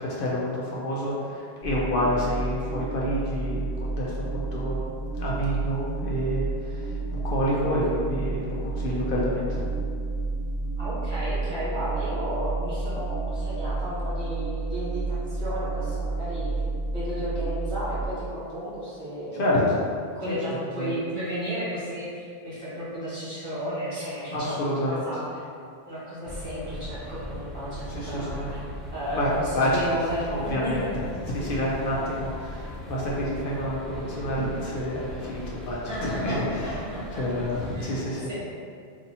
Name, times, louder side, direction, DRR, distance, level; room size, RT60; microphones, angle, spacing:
voice 1, 0.0-4.9 5.1-9.6 19.3-19.8 20.3-20.9 24.3-25.0 27.9-28.5 29.2-29.8 30.2-30.8 31.1-36.8 37.1-38.3, equal, 65° left, -5 dB, 0.7 m, -28 dB
sound 1, 1.6-18.1, right 3 dB, 45° left, 1.0 m, -30 dB
voice 2, 10.8-16.5 16.9-19.5 20.0-25.4 25.9-28.6 28.9-30.9 31.9-32.1 35.9-36.8 37.6-38.0 38.3-38.4, equal, 25° right, -10 dB, 1.4 m, -33 dB
sound 2, 26.2-37.7, equal, 50° right, 0.8 m, -38 dB
2.7 x 2.6 x 4.0 m, 2.3 s
omnidirectional pair, 1.0 m